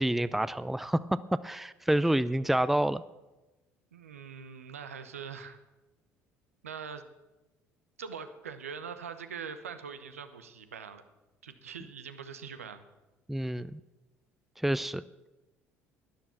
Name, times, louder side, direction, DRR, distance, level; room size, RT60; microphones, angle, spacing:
voice 1, 0.0-3.0 13.3-13.8 14.6-15.0, right 1 dB, 5° right, 16 dB, 0.5 m, -28 dB
voice 2, 3.9-5.6 6.6-7.0 8.0-11.0 11.4-12.8, right 6 dB, 90° right, 10 dB, 0.9 m, -42 dB
12.5 x 10.5 x 7.4 m, 1.1 s
hypercardioid pair, 60°, 7 cm